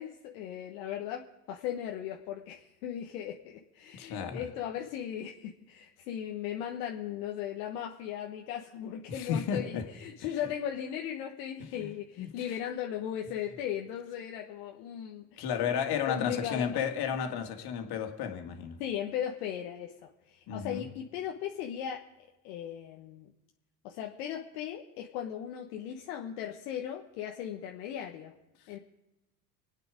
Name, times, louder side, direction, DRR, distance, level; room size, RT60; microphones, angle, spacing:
voice 1, 0.0-15.8 16.1-16.8 18.8-22.0 22.4-23.3 23.8-28.3 28.7-28.8, left 10 dB, 75° left, 2 dB, 1.3 m, -37 dB
voice 2, 3.9-4.5 9.1-9.9 11.6-12.5 15.4-18.8 20.5-20.9, left 7 dB, 55° left, 5 dB, 2.3 m, -33 dB
26.0 x 9.1 x 5.0 m, 0.98 s
hypercardioid pair, 75°, 47 cm